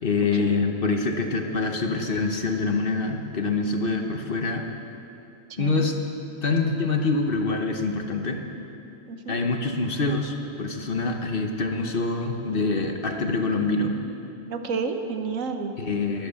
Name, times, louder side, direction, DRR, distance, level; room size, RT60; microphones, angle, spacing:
voice 1, 0.0-4.7 5.6-6.0 6.4-8.4 9.3-14.0 15.8-16.3, left 3 dB, 45° left, 4 dB, 1.0 m, -25 dB
voice 2, 9.1-9.4 14.5-15.7, right 5 dB, 75° right, 6 dB, 1.3 m, -30 dB
21.0 x 7.7 x 6.9 m, 2.8 s
omnidirectional pair, 1.4 m